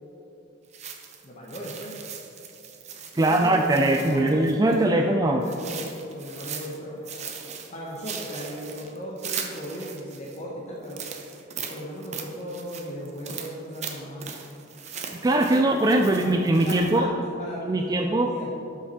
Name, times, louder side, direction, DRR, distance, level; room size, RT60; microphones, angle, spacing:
sound 1, 0.7-4.9 5.4-6.8 7.0-10.4 10.8-17.0, right 7 dB, 35° right, 0.8 m, -39 dB
voice 1, 1.2-1.9 3.1-7.3 7.7-11.0 11.7-14.4 16.0-16.4 16.6-18.5, equal, 35° left, -4 dB, 1.0 m, -36 dB
voice 2, 3.1-5.5 15.2-17.1 17.6-18.3, right 1 dB, 20° right, 4 dB, 0.3 m, -21 dB
12.0 x 5.7 x 4.2 m, 2.9 s
head